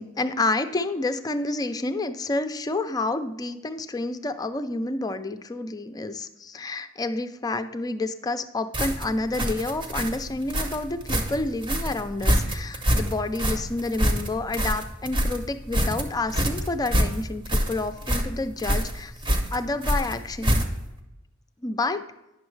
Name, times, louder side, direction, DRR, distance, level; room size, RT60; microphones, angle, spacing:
voice 1, 0.0-19.1 19.5-20.7 21.6-22.0, left 2 dB, 20° left, 9 dB, 0.4 m, -29 dB
sound 1, 8.7-21.0, equal, 25° right, 0.8 m, -26 dB
9.4 x 6.2 x 3.2 m, 0.94 s
head